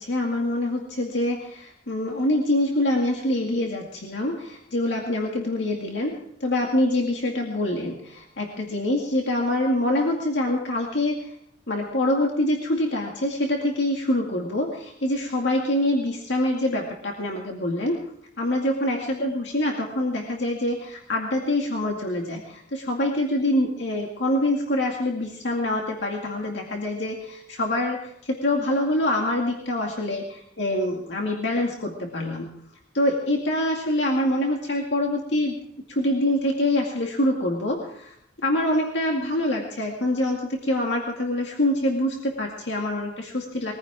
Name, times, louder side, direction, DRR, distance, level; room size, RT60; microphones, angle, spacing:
voice 1, 0.0-11.4 11.7-18.0 18.4-32.5 32.9-35.6 35.9-38.2 38.4-43.7, left 1 dB, 70° left, 0 dB, 2.2 m, -25 dB
22.0 x 15.0 x 3.6 m, 0.71 s
head